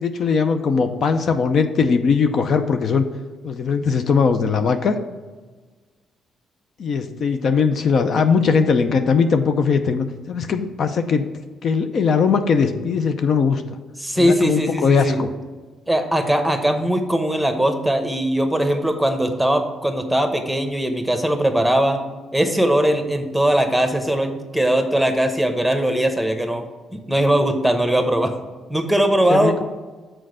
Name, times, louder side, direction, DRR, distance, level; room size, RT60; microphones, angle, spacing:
voice 1, 0.0-3.0 3.4-5.0 6.8-11.2 11.6-13.8 14.2-15.3 29.3-29.6, left 5 dB, 60° left, 8 dB, 0.5 m, -20 dB
voice 2, 14.0-15.2 15.9-22.0 22.3-26.7 26.9-28.3 28.7-29.6, right 1 dB, ahead, 6 dB, 1.0 m, -20 dB
6.4 x 4.5 x 6.3 m, 1.3 s
cardioid pair, 90°, 0 cm